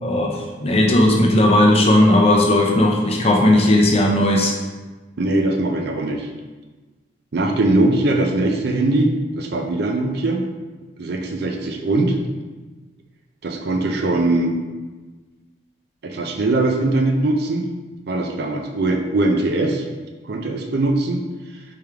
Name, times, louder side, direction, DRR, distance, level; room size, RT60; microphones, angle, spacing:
voice 1, 0.0-4.5, left 1 dB, 30° left, 0 dB, 0.5 m, -16 dB
voice 2, 5.2-6.3 7.3-10.4 11.0-12.2 13.4-14.6 16.0-17.7 18.1-19.8 20.2-21.2, right 2 dB, 55° right, 3 dB, 0.5 m, -21 dB
3.4 x 3.3 x 3.4 m, 1.3 s
head